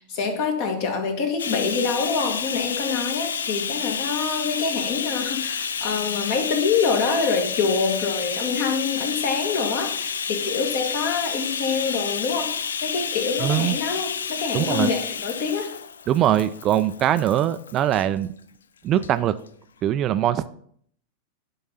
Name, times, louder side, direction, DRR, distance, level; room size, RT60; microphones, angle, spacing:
voice 1, 0.0-15.7, left 5 dB, 45° left, 5 dB, 1.7 m, -26 dB
Bathtub (filling or washing), 1.4-18.0 18.9-19.1 19.5-19.6, left 6 dB, 70° left, 0.4 m, -30 dB
voice 2, 13.4-13.8 14.5-14.9 16.1-18.3 18.8-19.4 19.8-20.5, right 11 dB, 35° right, 12 dB, 0.4 m, -22 dB
10.5 x 3.9 x 5.6 m, 0.62 s
figure-of-eight pair, 90°, 0 cm